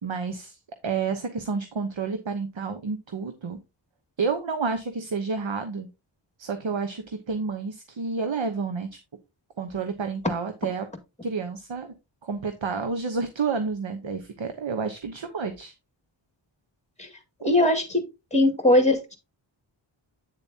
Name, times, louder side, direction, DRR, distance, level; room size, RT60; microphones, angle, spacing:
voice 1, 0.0-3.6 4.2-5.9 6.4-8.9 9.6-10.9 11.2-11.9 12.2-15.7, right 4 dB, 65° right, 7 dB, 1.1 m, -30 dB
voice 2, 17.4-18.0 18.3-19.2, left 1 dB, 15° left, 6 dB, 2.1 m, -20 dB
8.9 x 7.1 x 2.8 m, 0.25 s
wide cardioid pair, 85°, 50 cm